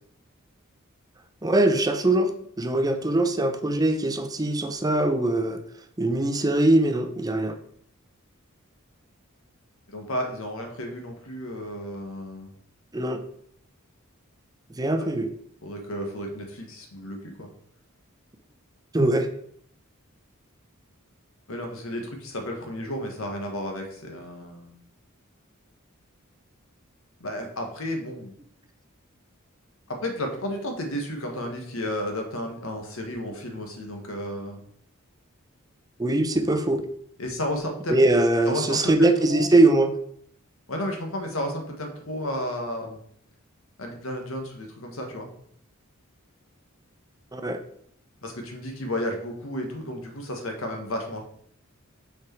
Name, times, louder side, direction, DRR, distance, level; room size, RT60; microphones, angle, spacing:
voice 1, 1.4-2.3 2.6-5.6 6.0-7.6 12.9-13.2 14.8-15.3 18.9-19.3 36.0-36.8 37.9-39.9 47.3-47.6, right 2 dB, 20° right, 7 dB, 0.6 m, -22 dB
voice 2, 9.9-12.5 14.9-15.1 15.6-17.5 21.5-24.7 27.2-28.3 29.9-34.6 37.2-38.0 38.4-39.5 40.7-43.0 43.8-45.3 48.2-51.2, left 1 dB, 75° left, 3 dB, 1.5 m, -32 dB
6.1 x 4.7 x 4.5 m, 0.65 s
head